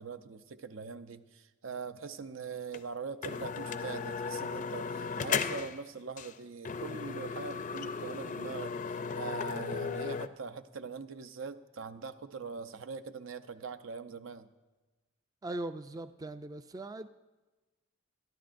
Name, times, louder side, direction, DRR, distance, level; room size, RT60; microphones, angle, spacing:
voice 1, 0.0-14.5, right 5 dB, 75° right, 10 dB, 0.6 m, -42 dB
sound 1, 2.7-2.8 3.2-5.8 6.2-6.3 6.7-10.3, left 5 dB, 40° left, 0.5 m, -36 dB
voice 2, 15.4-17.1, right 2 dB, 20° right, 10 dB, 0.3 m, -40 dB
23.5 x 11.5 x 2.6 m, 1.2 s
head